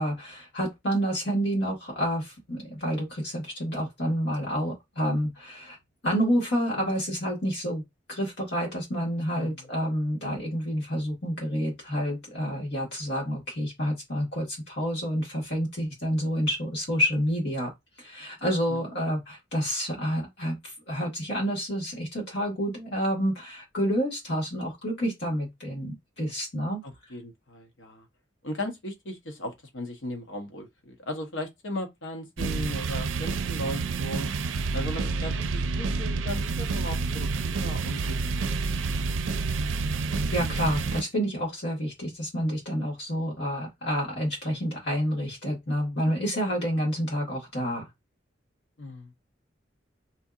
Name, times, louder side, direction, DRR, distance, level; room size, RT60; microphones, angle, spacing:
voice 1, 0.0-5.8 6.0-7.8 8.1-17.7 18.0-26.8 40.3-47.9, equal, 65° left, 1.8 m, -29 dB
voice 2, 9.3-9.7 18.7-18.8 26.8-28.1 28.4-34.3 34.7-38.3 39.0-39.5 48.8-49.1, left 1 dB, 85° left, 1.0 m, -37 dB
sound 1, 32.4-41.0, right 4 dB, 85° right, 0.5 m, -29 dB
4.2 x 2.8 x 2.5 m
head